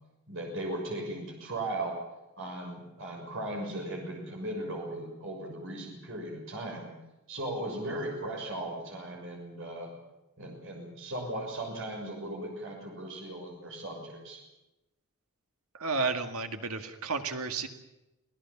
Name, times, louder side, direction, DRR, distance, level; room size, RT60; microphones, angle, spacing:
voice 1, 0.3-2.0 2.4-6.9 7.3-9.9 10.4-14.4, right 1 dB, 60° right, 1 dB, 6.3 m, -37 dB
voice 2, 15.7-17.7, right 4 dB, 90° right, 7 dB, 1.9 m, -32 dB
26.5 x 17.5 x 7.4 m, 0.97 s
head